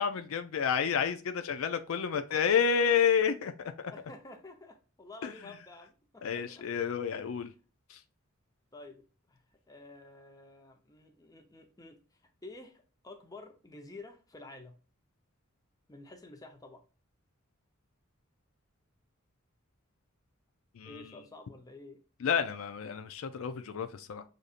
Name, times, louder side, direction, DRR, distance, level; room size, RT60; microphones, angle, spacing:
voice 1, 0.0-3.9 5.2-5.3 6.2-7.5 7.9-8.0 20.8-21.0 22.2-24.2, left 7 dB, 70° left, 0.4 m, -30 dB
voice 2, 3.9-6.6 7.2-7.3 8.7-9.4 9.7-12.0 12.4-14.7 15.9-16.8 20.8-22.0, left 2 dB, 15° left, 0.7 m, -50 dB
6.4 x 2.7 x 2.4 m
head